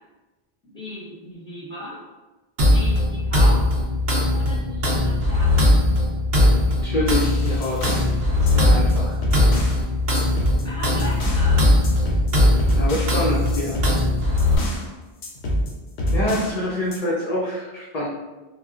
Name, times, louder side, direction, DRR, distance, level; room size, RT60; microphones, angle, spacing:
voice 1, 0.6-2.0 2.7-3.6 4.3-5.5 10.2-11.7, left 1 dB, 5° left, -8 dB, 0.9 m, -36 dB
sound 1, 2.6-14.6, left 1 dB, 70° right, 0.8 m, -19 dB
voice 2, 6.7-8.0 8.4-9.2 12.7-13.8 16.1-18.1, left 1 dB, 50° left, -6 dB, 0.5 m, -26 dB
sound 2, 7.1-8.1 8.5-9.8 10.1-11.5 11.8-14.9 15.2-16.6 16.9-17.0, equal, 90° left, 0.9 m, -27 dB
3.9 x 2.1 x 2.3 m, 1.2 s
omnidirectional pair, 1.1 m